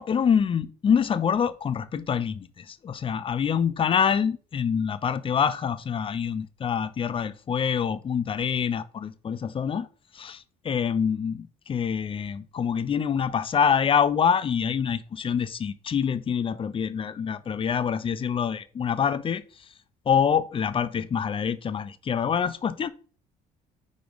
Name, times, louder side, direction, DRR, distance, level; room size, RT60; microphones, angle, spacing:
voice 1, 0.0-9.9 10.1-19.7 20.1-22.9, left 7 dB, 30° left, 0.5 m, -26 dB
4.8 x 4.2 x 5.2 m
cardioid pair, 110°, 17 cm